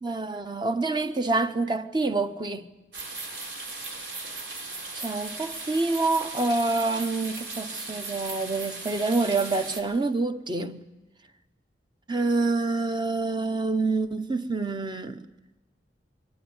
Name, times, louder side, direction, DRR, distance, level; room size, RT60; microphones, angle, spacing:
voice 1, 0.0-2.7 4.9-10.8 12.1-15.3, right 3 dB, 25° right, 0.8 m, -27 dB
sound 1, 2.9-9.8, right 3 dB, 80° right, 4.1 m, -37 dB
23.0 x 14.0 x 9.6 m
head